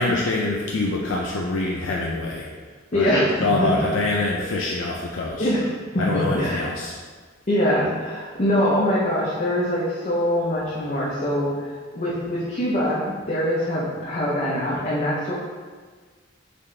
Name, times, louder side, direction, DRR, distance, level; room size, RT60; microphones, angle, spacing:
voice 1, 0.0-2.5 2.9-3.1 3.4-5.5 6.0-7.0, left 2 dB, 80° left, -3 dB, 0.5 m, -25 dB
voice 2, 2.9-3.3 3.6-3.7 5.4-5.7 5.9-6.7 7.5-15.3, left 1 dB, 40° left, -7 dB, 0.7 m, -23 dB
4.2 x 3.6 x 3.2 m, 1.5 s
head